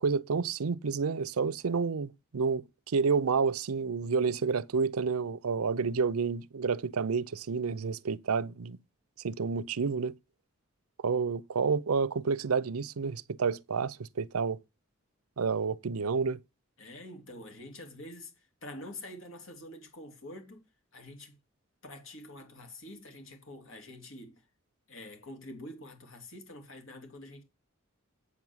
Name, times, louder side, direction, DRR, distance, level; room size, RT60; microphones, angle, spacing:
voice 1, 0.0-8.8 9.2-10.1 11.0-14.6 15.4-16.4, right 5 dB, 90° right, 0.6 m, -29 dB
voice 2, 16.8-18.3 18.6-20.6 20.9-21.3 21.8-24.4 24.9-27.4, left 1 dB, 60° left, 3.4 m, -46 dB
8.4 x 6.1 x 7.2 m
head